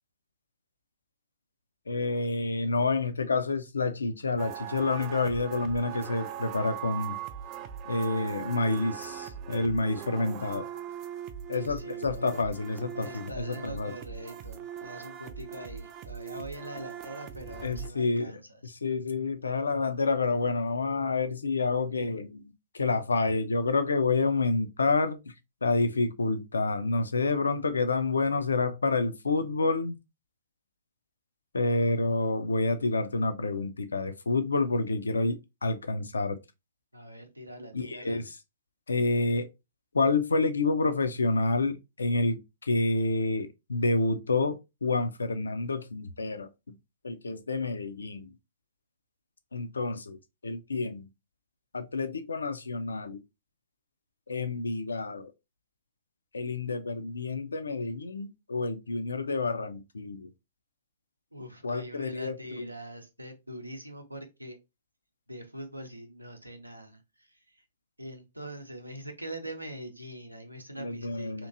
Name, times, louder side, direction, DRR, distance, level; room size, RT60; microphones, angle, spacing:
voice 1, 1.9-7.2 7.9-10.7 11.5-13.9 17.6-25.2 25.6-30.0 31.5-36.4 37.7-38.2 38.9-39.5 39.9-42.4 42.7-46.5 47.0-48.3 49.5-50.2 50.4-51.1 51.7-53.2 54.3-55.3 56.3-60.3 61.6-62.7 70.8-71.5, left 3 dB, 70° left, 0.4 m, -28 dB
sound 1, 4.4-17.9, right 9 dB, 30° right, 0.4 m, -40 dB
voice 2, 11.5-12.4 13.0-18.7 36.9-38.3 61.3-64.6 65.3-67.3 68.0-71.5, right 1 dB, 90° right, 0.6 m, -43 dB
2.9 x 2.5 x 2.5 m
figure-of-eight pair, 115°, 0 cm